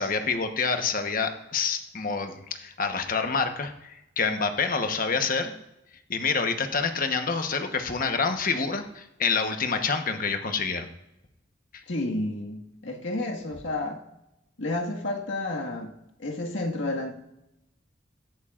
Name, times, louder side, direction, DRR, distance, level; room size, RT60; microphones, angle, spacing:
voice 1, 0.0-5.5 6.1-10.9, left 5 dB, 50° left, 6 dB, 1.1 m, -27 dB
voice 2, 11.9-14.0 14.6-15.9 16.2-17.1, left 2 dB, 85° left, 1 dB, 1.8 m, -31 dB
16.0 x 11.5 x 2.5 m, 0.88 s
head